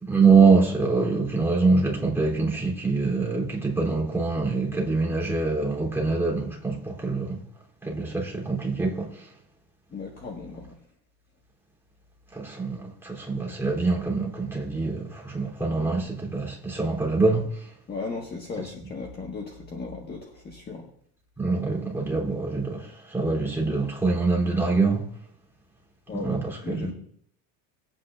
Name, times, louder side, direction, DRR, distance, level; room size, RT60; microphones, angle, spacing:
voice 1, 0.0-7.4 7.8-9.2 12.3-17.6 18.6-18.7 21.4-25.1 26.2-26.9, right 4 dB, 5° right, 3.2 m, -24 dB
voice 2, 9.9-10.7 17.9-20.8 26.1-26.4 26.6-26.9, left 4 dB, 25° left, 1.5 m, -36 dB
19.5 x 9.2 x 2.5 m
cardioid pair, 150°, 41 cm